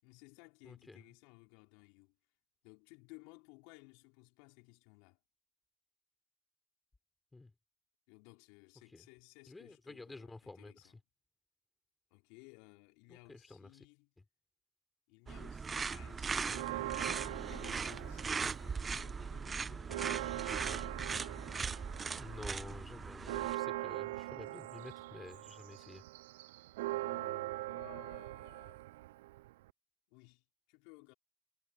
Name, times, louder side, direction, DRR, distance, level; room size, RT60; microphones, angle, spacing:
voice 1, 0.0-2.2 2.6-5.2 8.1-11.0 12.1-14.1 15.1-16.4 17.3-18.3 18.6-20.4 27.0-28.9 30.1-31.1, left 30 dB, 80° left, 4.6 m, -59 dB
voice 2, 0.6-1.0 7.3-7.5 8.9-9.1 9.5-10.9 13.1-13.8 22.2-26.0, left 2 dB, 25° left, 4.4 m, -51 dB
sound 1, 15.3-23.5, right 5 dB, 40° right, 1.0 m, -39 dB
Church bell, 16.5-18.8 19.2-19.3 19.6-29.7, right 18 dB, 85° right, 0.4 m, -42 dB
hypercardioid pair, 45°, 0 cm